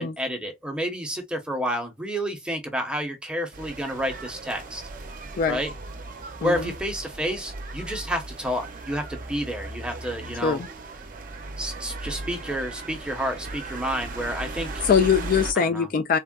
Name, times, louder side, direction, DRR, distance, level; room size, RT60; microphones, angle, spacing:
voice 1, 0.0-4.8 5.5-5.7 6.4-10.6 11.6-14.7 15.6-15.9, equal, 5° right, 0.8 m, -30 dB
sound 1, 3.5-15.5, right 2 dB, 45° right, 0.6 m, -37 dB
voice 2, 14.8-16.2, left 6 dB, 45° left, 0.3 m, -22 dB
3.5 x 2.2 x 2.3 m
head